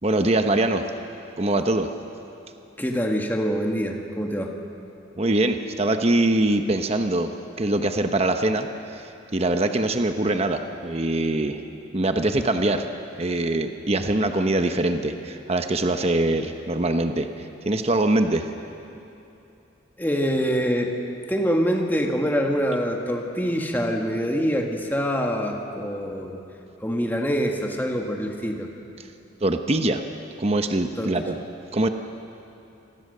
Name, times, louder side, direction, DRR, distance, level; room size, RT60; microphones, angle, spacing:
voice 1, 0.0-0.8 1.4-1.9 5.2-7.3 7.6-11.6 11.9-12.9 13.2-17.3 17.7-18.4 29.4-30.0 30.4-31.4 31.7-31.9, right 2 dB, 35° right, 6 dB, 0.9 m, -23 dB
voice 2, 2.8-4.5 20.0-20.9 21.3-26.4 26.8-28.7 31.0-31.2, equal, 10° left, 1 dB, 1.7 m, -25 dB
26.5 x 19.5 x 6.7 m, 2.8 s
head